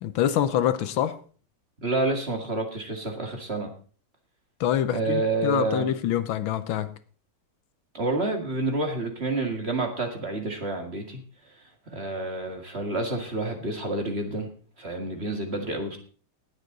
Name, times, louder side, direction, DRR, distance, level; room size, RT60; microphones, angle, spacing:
voice 1, 0.0-1.2 4.6-6.9, left 10 dB, 75° left, 1.5 m, -25 dB
voice 2, 1.8-3.7 4.9-5.9 7.9-11.2 11.9-14.5 14.8-16.0, right 2 dB, 30° right, 2.1 m, -29 dB
19.5 x 8.2 x 3.9 m
omnidirectional pair, 2.3 m